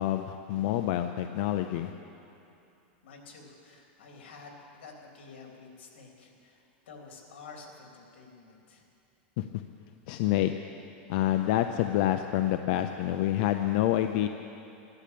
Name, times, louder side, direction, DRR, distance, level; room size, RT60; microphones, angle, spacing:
voice 1, 0.0-1.9 9.4-9.5 10.1-10.5 11.1-14.3, left 13 dB, 50° left, 7 dB, 0.6 m, -27 dB
voice 2, 3.0-8.8, left 4 dB, 80° left, 1 dB, 3.4 m, -50 dB
14.5 x 11.5 x 8.6 m, 2.7 s
supercardioid pair, 160°, 6 cm